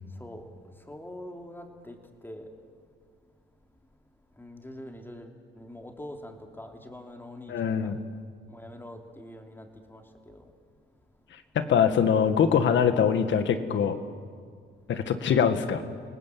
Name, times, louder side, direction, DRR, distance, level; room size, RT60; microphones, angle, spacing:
voice 1, 0.1-2.5 4.4-7.9 8.5-10.5, left 1 dB, 10° left, 3 dB, 3.2 m, -44 dB
voice 2, 7.5-8.0 11.6-14.0 14.9-15.8, left 7 dB, 70° left, 9 dB, 2.0 m, -23 dB
29.5 x 19.0 x 8.6 m, 2.1 s
cardioid pair, 90°, 20 cm